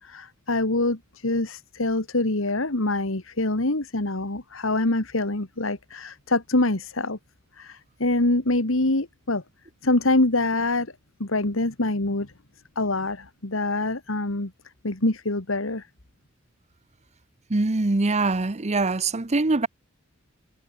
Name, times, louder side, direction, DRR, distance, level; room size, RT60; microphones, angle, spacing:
voice 1, 0.0-7.2 7.6-9.4 9.8-10.9 11.2-12.3 12.8-14.5 14.8-15.8, left 2 dB, 75° left, 2.2 m, -25 dB
voice 2, 17.5-19.7, right 3 dB, 35° right, 0.9 m, -23 dB
head